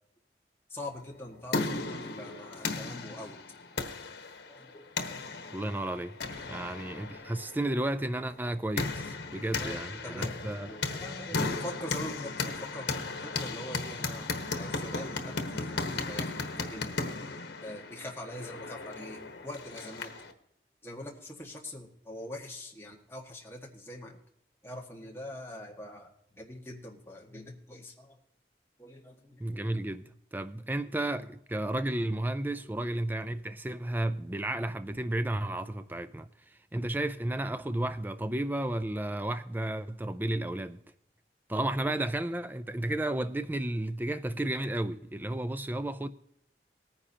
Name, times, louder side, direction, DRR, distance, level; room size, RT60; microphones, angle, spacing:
voice 1, 0.7-3.4 4.5-4.8 6.5-6.9 9.6-12.9 13.2-14.3 14.6-20.1 20.8-24.2 24.6-28.2 28.8-29.4 32.6-32.8, left 1 dB, 15° left, 1.6 m, -43 dB
sound 1, 1.1-20.3, left 3 dB, 90° left, 1.2 m, -36 dB
voice 2, 5.5-10.7 11.3-11.6 29.4-40.8 41.5-46.1, right 1 dB, 10° right, 0.3 m, -33 dB
19.0 x 9.9 x 2.8 m
head